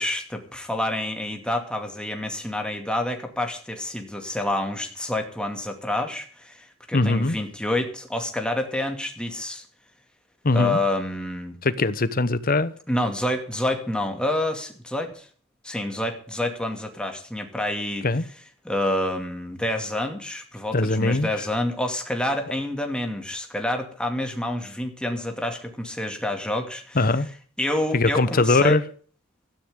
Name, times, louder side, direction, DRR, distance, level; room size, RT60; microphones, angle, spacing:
voice 1, 0.0-9.7 10.5-11.6 12.9-15.3 15.6-18.1 18.6-27.1 27.6-28.8, left 1 dB, 5° left, 2.4 m, -28 dB
voice 2, 6.9-7.4 10.4-10.8 11.6-12.7 18.0-18.2 20.7-21.3 27.0-27.3 27.9-28.8, left 2 dB, 45° left, 1.0 m, -21 dB
17.0 x 13.5 x 3.8 m
head